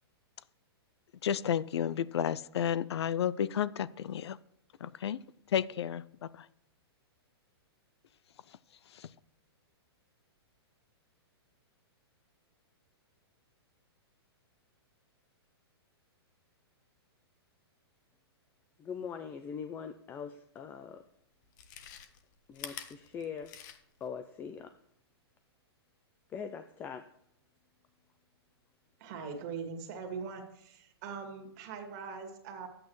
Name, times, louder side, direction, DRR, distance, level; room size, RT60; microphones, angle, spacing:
voice 1, 1.2-4.4 4.8-5.2 5.5-6.5 8.9-9.1, left 9 dB, 80° left, 19 dB, 0.5 m, -32 dB
voice 2, 18.8-21.0 22.5-23.6 24.0-24.7 26.3-27.1, left 7 dB, 15° left, 9 dB, 0.3 m, -42 dB
Chewing mastication, 20.7-20.8 21.4-24.1 24.4-24.5, left 9 dB, 45° left, 0.9 m, -47 dB
voice 3, 29.0-32.7, right 5 dB, 40° right, 4 dB, 2.0 m, -41 dB
11.5 x 8.7 x 3.1 m, 0.72 s
hypercardioid pair, 150°, 14 cm